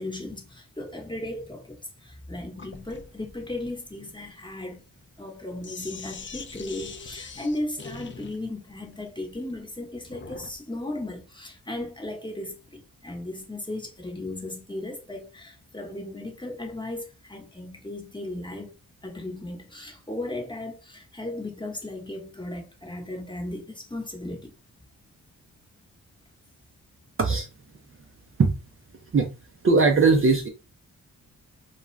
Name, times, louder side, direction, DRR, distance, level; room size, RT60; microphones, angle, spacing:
voice 1, 0.0-4.8 5.2-18.7 19.0-24.5, left 1 dB, 10° left, 1.0 m, -36 dB
Sink (filling or washing), 2.6-10.6, left 5 dB, 30° left, 0.5 m, -44 dB
voice 2, 29.6-30.5, right 4 dB, 35° right, 0.6 m, -19 dB
2.4 x 2.3 x 3.1 m
cardioid pair, 50°, 37 cm